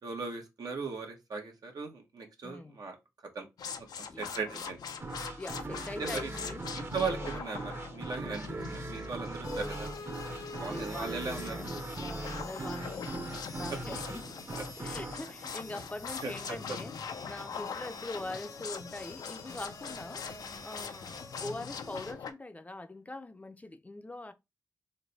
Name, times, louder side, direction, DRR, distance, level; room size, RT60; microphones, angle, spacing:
voice 1, 0.0-3.0 3.3-3.5 4.0-4.8 6.0-6.3 6.7-9.9 10.6-11.7 16.2-16.6, right 4 dB, 80° right, 1.0 m, -38 dB
voice 2, 2.4-2.8 4.1-4.7 5.4-6.7 10.5-13.3 13.6-14.4 14.8-16.9 17.3-20.3 20.6-24.3, left 2 dB, 25° left, 0.4 m, -43 dB
sound 1, 3.6-22.3, left 6 dB, 90° left, 0.4 m, -43 dB
sound 2, 5.0-16.5, right 2 dB, 40° right, 0.7 m, -40 dB
sound 3, 9.4-22.1, left 3 dB, 70° left, 0.8 m, -46 dB
3.2 x 2.1 x 3.9 m
cardioid pair, 55°, 7 cm